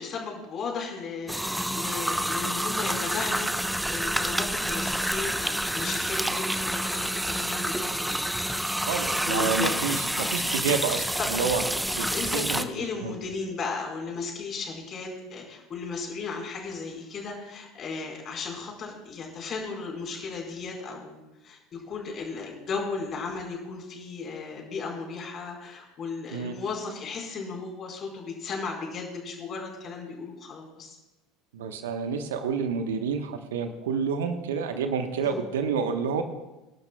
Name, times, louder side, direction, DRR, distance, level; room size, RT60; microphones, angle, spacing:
voice 1, 0.0-8.3 9.3-9.8 10.1-10.3 10.6-11.3 12.0-31.0 35.2-35.4, left 4 dB, 40° left, 1 dB, 4.5 m, -35 dB
sound 1, 1.3-12.6, right 1 dB, 5° right, 0.8 m, -28 dB
voice 2, 8.8-11.6 11.9-12.1 12.3-12.7 13.0-13.2 26.3-26.5 31.5-36.2, right 6 dB, 70° right, 7 dB, 1.1 m, -29 dB
25.5 x 12.0 x 2.3 m, 1.1 s
figure-of-eight pair, 75°, 0 cm